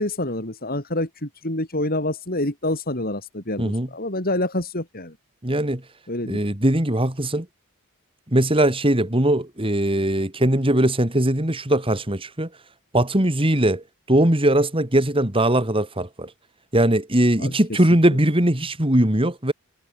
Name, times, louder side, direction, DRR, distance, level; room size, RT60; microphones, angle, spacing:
voice 1, 0.0-5.2 6.1-6.4 17.4-17.8, left 1 dB, 40° left, 5.5 m, -27 dB
voice 2, 5.4-5.8 6.3-7.5 8.3-12.5 12.9-16.3 16.7-19.5, right 1 dB, 25° right, 2.6 m, -20 dB
head